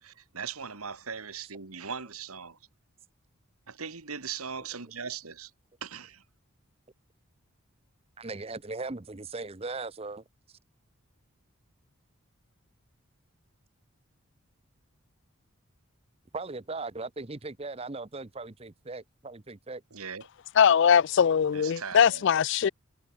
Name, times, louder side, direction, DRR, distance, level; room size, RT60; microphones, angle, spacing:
voice 1, 0.0-2.6 3.7-5.5 5.8-6.2 19.9-20.3 21.5-22.3, right 6 dB, 85° right, 2.0 m, -39 dB
voice 2, 8.2-10.2 16.3-19.8, right 3 dB, 25° right, 0.8 m, -38 dB
voice 3, 20.6-22.7, left 7 dB, 55° left, 0.3 m, -21 dB
head